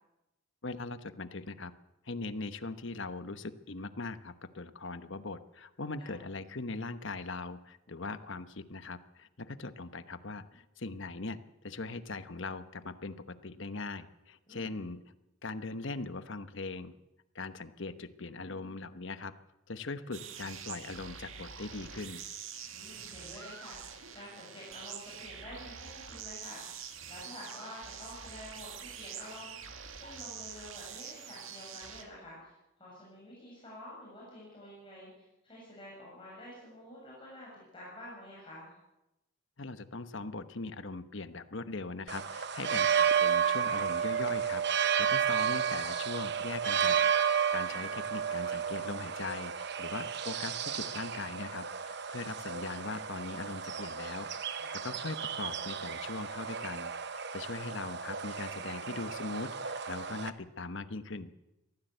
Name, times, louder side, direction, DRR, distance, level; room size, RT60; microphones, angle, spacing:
voice 1, 0.6-1.7 2.0-11.4 11.6-13.1 13.4-15.0 15.4-17.0 17.3-19.3 19.7-22.2 39.6-61.3, left 3 dB, 60° left, 11 dB, 1.1 m, -40 dB
voice 2, 14.5-14.8 22.7-38.7 42.8-42.9 54.6-55.0, left 1 dB, 25° left, -6 dB, 7.3 m, -49 dB
sound 1, 20.1-32.0, right 7 dB, 70° right, 2.0 m, -45 dB
sound 2, 42.1-60.3, right 7 dB, 50° right, 0.9 m, -32 dB
22.5 x 15.0 x 8.1 m, 0.94 s
head